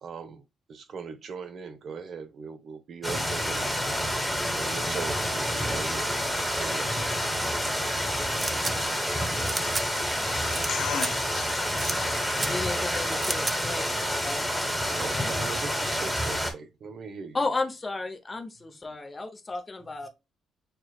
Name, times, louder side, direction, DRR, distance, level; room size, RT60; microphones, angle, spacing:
voice 1, 0.0-3.7 4.5-6.2 6.5-7.2 15.0-17.4 18.8-19.0, right 5 dB, 60° right, 0.7 m, -39 dB
sound 1, 3.0-16.5, equal, 5° right, 1.2 m, -28 dB
sound 2, 8.4-8.7 9.5-9.8 10.5-10.7 10.9-11.1 11.8-12.0 12.3-12.5 13.2-13.5, right 3 dB, 25° right, 0.3 m, -31 dB
voice 2, 10.2-12.5, left 9 dB, 80° left, 0.7 m, -37 dB
voice 3, 12.4-13.8 14.2-14.5 14.9-15.3 15.6-16.0 16.3-16.4 17.3-20.1, left 3 dB, 25° left, 0.8 m, -34 dB
6.7 x 2.4 x 2.3 m
cardioid pair, 100°, 0 cm